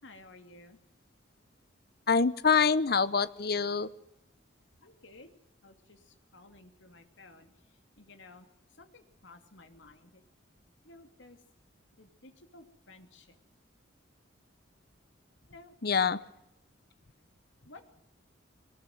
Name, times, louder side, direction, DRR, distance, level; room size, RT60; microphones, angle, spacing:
voice 1, 0.0-0.8 4.8-5.3 5.6-5.7 6.3-7.5 8.0-8.5 8.8-10.0 10.9-11.4 12.0-13.2 15.5-15.7 17.7-17.8, left 2 dB, 65° left, 6 dB, 2.7 m, -54 dB
voice 2, 2.1-3.9 15.8-16.2, left 5 dB, 50° left, 15 dB, 0.9 m, -25 dB
22.0 x 19.5 x 7.9 m, 0.84 s
head